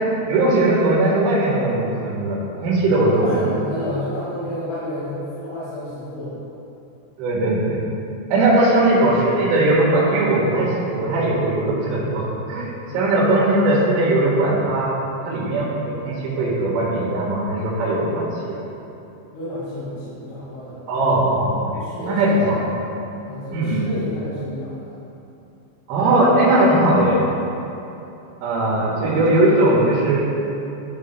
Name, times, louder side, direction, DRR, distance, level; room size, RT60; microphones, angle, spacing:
voice 1, 0.3-3.2 7.2-7.8 8.3-14.9 15.3-15.7 16.0-18.6 20.9-22.6 23.5-24.0 25.9-27.2 28.4-30.2, right 2 dB, 80° right, -6 dB, 3.9 m, -19 dB
voice 2, 3.1-6.3 12.8-13.0 19.3-20.8 21.7-22.7 23.3-25.0 29.1-29.3, left 1 dB, 85° left, -11 dB, 4.5 m, -30 dB
12.0 x 8.2 x 2.2 m, 2.8 s
omnidirectional pair, 5.7 m